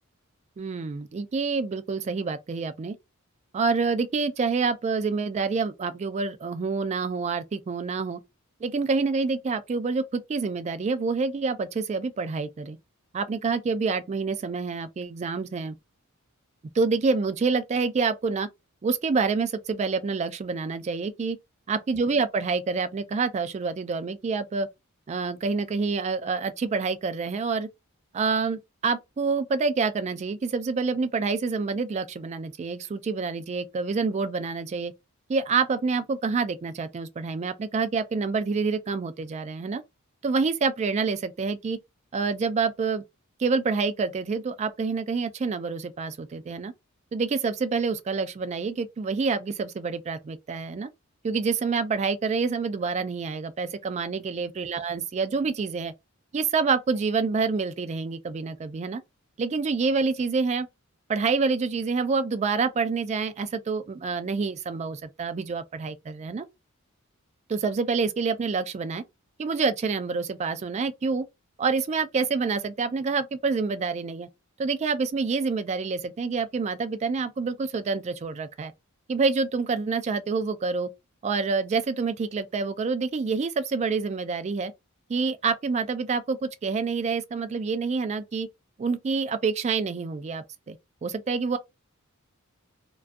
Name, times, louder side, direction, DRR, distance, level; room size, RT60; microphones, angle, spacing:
voice 1, 0.6-3.0 3.5-8.2 8.6-12.8 13.1-15.7 16.7-18.5 18.8-21.4 21.7-24.7 25.1-27.7 28.1-34.9 35.3-39.8 40.2-41.8 42.1-43.0 43.4-46.7 47.1-50.9 51.2-55.9 56.3-59.0 59.4-60.7 61.1-66.5 67.5-69.0 69.4-71.2 71.6-74.3 74.6-78.7 79.1-80.9 81.2-84.7 85.1-88.5 88.8-90.8 91.0-91.6, right 4 dB, 30° right, 0.3 m, -27 dB
2.3 x 2.2 x 2.5 m
head